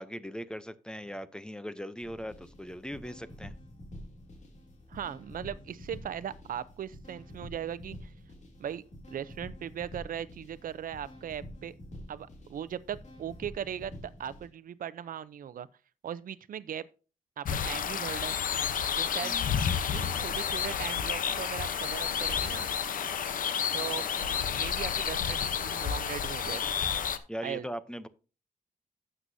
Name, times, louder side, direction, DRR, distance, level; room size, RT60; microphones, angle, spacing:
voice 1, 0.0-3.5 19.2-19.7 24.2-24.4 27.3-28.1, equal, 5° left, 0.6 m, -40 dB
sound 1, 2.0-14.5, left 1 dB, 55° left, 2.8 m, -48 dB
voice 2, 4.9-8.1 8.6-11.7 12.1-15.7 16.0-16.9 17.4-18.4 19.0-19.4 19.9-22.7 23.7-24.1 24.6-26.6 27.4-27.7, right 9 dB, 80° right, 0.6 m, -39 dB
sound 2, 17.4-27.2, left 7 dB, 75° left, 0.8 m, -30 dB
12.5 x 7.8 x 2.7 m
wide cardioid pair, 165°, 14 cm